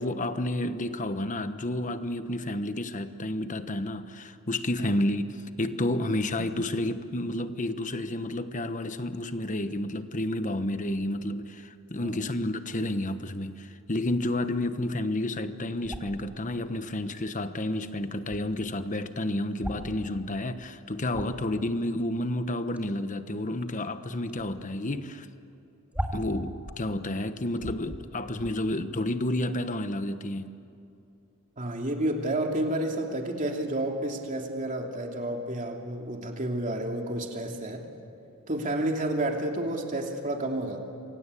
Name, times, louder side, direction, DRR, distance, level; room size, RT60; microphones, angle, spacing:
voice 1, 0.0-25.3 26.1-30.5, left 1 dB, 35° left, 1.1 m, -30 dB
voice 2, 12.0-12.4 31.6-37.9 38.5-40.8, right 1 dB, 35° right, 2.9 m, -30 dB
sound 1, 15.8-16.2 17.4-17.5 17.7-17.8 18.1-18.4 19.5-19.9 20.5-20.6 20.9-21.5 22.7-22.9 23.6-23.9 24.3-24.5 24.9-25.0 25.3-25.4 25.9-26.9 27.2-27.3 27.6-28.0 28.3-28.5, equal, 5° right, 2.2 m, -37 dB
27.5 x 24.5 x 8.4 m
head